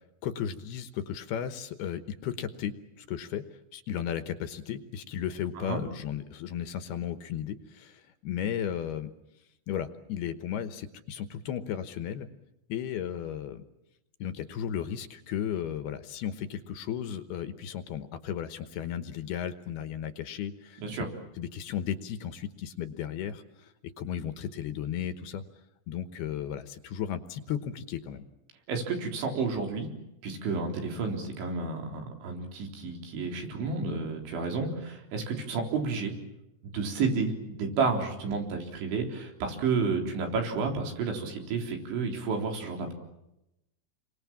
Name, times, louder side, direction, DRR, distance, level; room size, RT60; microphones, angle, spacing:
voice 1, 0.2-3.4 3.7-9.1 9.7-12.3 12.7-13.6 14.2-21.1 21.4-25.4 25.9-28.2, left 9 dB, 70° left, 10 dB, 2.8 m, -35 dB
voice 2, 28.7-29.9 30.2-36.1 36.6-42.9, right 4 dB, 80° right, 3 dB, 6.2 m, -31 dB
29.0 x 24.0 x 7.3 m, 0.89 s
omnidirectional pair, 5.2 m